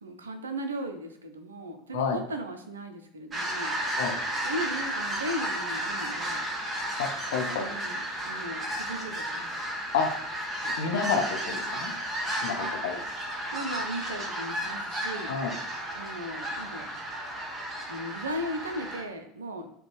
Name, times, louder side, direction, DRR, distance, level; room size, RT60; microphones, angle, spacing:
voice 1, 0.0-3.8 4.4-6.4 7.5-9.6 11.5-11.9 12.6-12.7 13.5-15.4 15.9-16.9 17.9-19.7, right 1 dB, 75° right, 7 dB, 0.4 m, -37 dB
sound 1, 3.3-19.0, right 1 dB, 20° right, 0.9 m, -33 dB
voice 2, 7.0-7.7 9.9-10.1 10.6-11.9 12.4-13.0 15.3-15.5, left 5 dB, 65° left, 3 dB, 0.6 m, -29 dB
5.0 x 2.2 x 3.0 m, 0.69 s
figure-of-eight pair, 75°, 0 cm